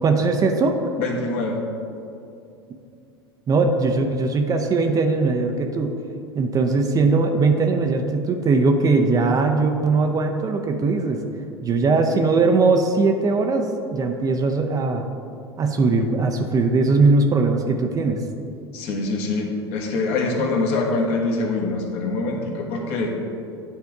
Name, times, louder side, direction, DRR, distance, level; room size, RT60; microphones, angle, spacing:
voice 1, 0.0-0.9 3.5-6.0 6.3-11.2 11.6-15.1 15.6-18.2, right 3 dB, 25° right, 4 dB, 0.6 m, -20 dB
voice 2, 1.0-1.6 18.7-23.2, left 3 dB, 50° left, 1 dB, 1.2 m, -24 dB
9.9 x 3.4 x 4.7 m, 2.5 s
figure-of-eight pair, 80°, 14 cm